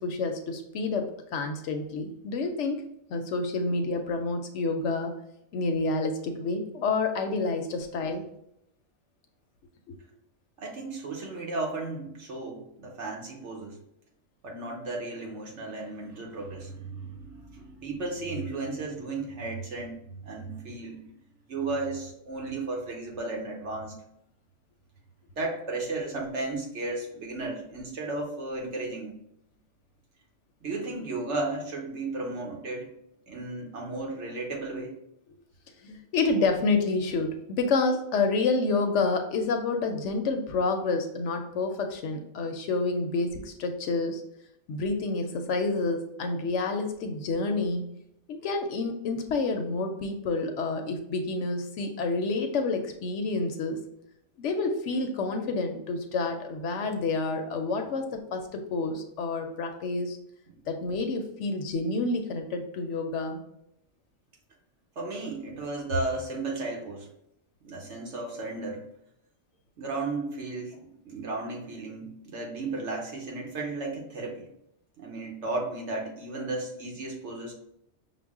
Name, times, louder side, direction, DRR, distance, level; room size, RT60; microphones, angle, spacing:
voice 1, 0.0-5.1 5.5-8.2 35.8-44.2 44.7-47.9 48.3-53.8 54.4-60.2 60.7-63.4, left 3 dB, 70° left, 5 dB, 0.8 m, -29 dB
voice 2, 10.6-13.8 14.4-21.1 21.5-23.9 25.3-29.1 30.6-32.9 33.3-35.0 60.5-60.6 65.0-67.1 67.6-68.8 69.8-74.5 75.0-77.5, right 2 dB, 60° right, 0 dB, 1.2 m, -34 dB
5.7 x 2.1 x 3.5 m, 0.77 s
omnidirectional pair, 1.4 m